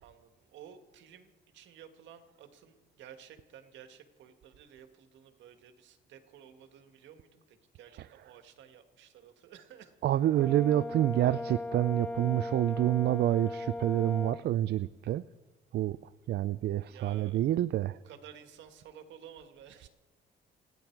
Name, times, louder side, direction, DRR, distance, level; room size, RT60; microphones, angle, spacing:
voice 1, 0.0-10.0 16.8-17.5 17.9-19.9, right 9 dB, 85° right, 7 dB, 1.9 m, -53 dB
voice 2, 10.0-15.2 15.7-16.0 16.3-18.0, right 13 dB, 65° right, 16 dB, 0.4 m, -28 dB
Brass instrument, 10.3-14.4, left 2 dB, 5° left, 0.5 m, -38 dB
28.5 x 10.5 x 4.7 m, 1.2 s
cardioid pair, 95°, 19 cm